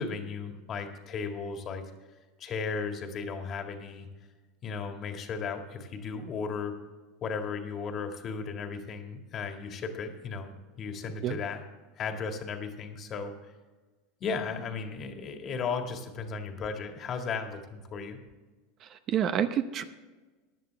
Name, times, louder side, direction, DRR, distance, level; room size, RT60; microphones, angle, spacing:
voice 1, 0.0-1.9 2.4-4.1 4.6-6.8 7.2-11.6 12.0-13.5 14.2-18.2, left 5 dB, 35° left, 5 dB, 1.9 m, -35 dB
voice 2, 18.8-19.8, right 9 dB, 40° right, 10 dB, 0.8 m, -28 dB
16.0 x 10.5 x 3.4 m, 1.3 s
supercardioid pair, 120°, 0 cm